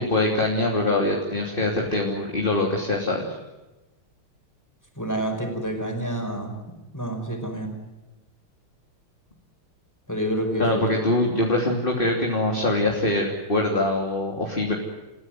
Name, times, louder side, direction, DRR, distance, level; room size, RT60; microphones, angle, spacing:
voice 1, 0.0-3.4 10.6-14.7, left 2 dB, 25° left, 0 dB, 3.2 m, -23 dB
voice 2, 5.0-6.5 6.9-7.8 10.1-10.8, right 1 dB, 10° left, 4 dB, 5.4 m, -28 dB
29.5 x 16.0 x 9.3 m, 1.1 s
omnidirectional pair, 2.4 m